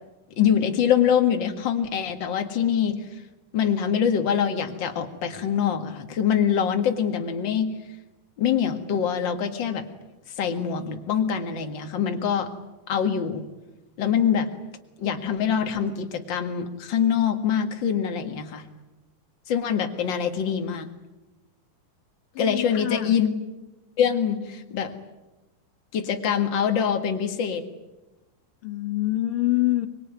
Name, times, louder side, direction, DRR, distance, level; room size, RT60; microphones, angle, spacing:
voice 1, 0.4-3.0 3.5-7.8 8.4-9.9 10.4-12.5 12.9-13.4 14.0-14.5 15.0-18.7 19.5-20.9 22.4-23.3 24.0-24.9 25.9-27.7, left 8 dB, 40° left, 5 dB, 2.1 m, -24 dB
voice 2, 22.3-23.2 28.6-29.9, left 16 dB, 65° left, 9 dB, 1.3 m, -25 dB
24.5 x 22.5 x 9.4 m, 1.0 s
omnidirectional pair, 3.7 m